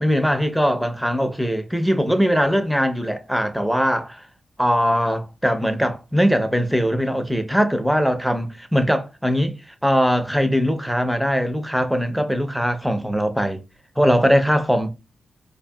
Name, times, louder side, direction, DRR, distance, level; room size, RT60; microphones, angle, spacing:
voice 1, 0.0-4.2 4.6-9.5 9.8-13.6 14.0-14.9, equal, ahead, 0.4 m, -21 dB
4.5 x 2.6 x 2.2 m
wide cardioid pair, 105°, 0 cm